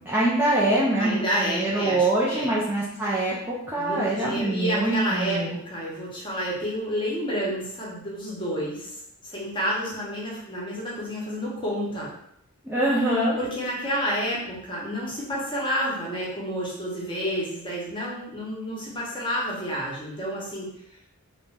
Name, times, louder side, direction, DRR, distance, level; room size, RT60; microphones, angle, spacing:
voice 1, 0.0-5.6 12.6-13.4, right 1 dB, 10° right, -8 dB, 0.3 m, -24 dB
voice 2, 1.0-2.5 3.7-9.0 9.2-12.1 13.4-20.7, equal, 20° left, -5 dB, 0.8 m, -29 dB
2.5 x 2.2 x 3.2 m, 0.74 s
head